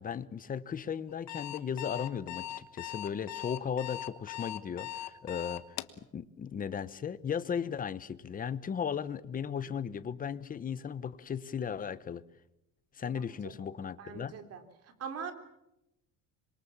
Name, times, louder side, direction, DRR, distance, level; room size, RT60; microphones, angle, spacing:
voice 1, 0.0-12.2 12.9-14.3, left 7 dB, 25° left, 16 dB, 1.0 m, -36 dB
Alarm, 1.1-6.0, left 13 dB, 60° left, 1.5 m, -40 dB
voice 2, 14.0-14.6 15.0-15.3, right 6 dB, 50° right, 7 dB, 3.7 m, -41 dB
26.5 x 23.0 x 7.4 m, 0.88 s
cardioid pair, 150°, 31 cm